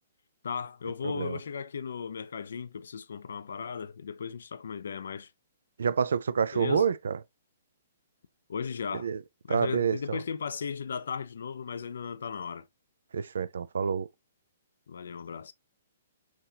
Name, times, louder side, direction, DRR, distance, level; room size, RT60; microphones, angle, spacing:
voice 1, 0.4-5.3 6.5-6.9 8.5-9.1 9.4-12.6 14.9-15.5, left 6 dB, 75° left, 0.4 m, -36 dB
voice 2, 1.0-1.4 5.8-7.2 9.0-9.2 9.5-10.2 13.1-14.1, right 6 dB, 80° right, 0.3 m, -28 dB
5.8 x 2.7 x 2.8 m
hypercardioid pair, 140°, 0 cm